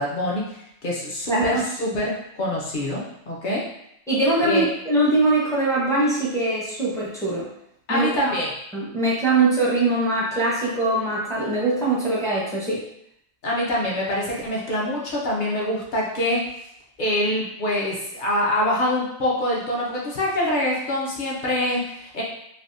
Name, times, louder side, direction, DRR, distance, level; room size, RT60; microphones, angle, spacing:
voice 1, 0.0-3.6 4.4-4.7 7.9-8.5 13.4-16.4 17.0-22.2, left 1 dB, 45° left, -4 dB, 0.7 m, -25 dB
voice 2, 1.3-1.6 4.1-4.6 4.9-7.5 7.9-8.1 8.7-12.8, right 2 dB, 5° left, -7 dB, 0.4 m, -22 dB
3.3 x 2.2 x 2.6 m, 0.76 s
omnidirectional pair, 1.4 m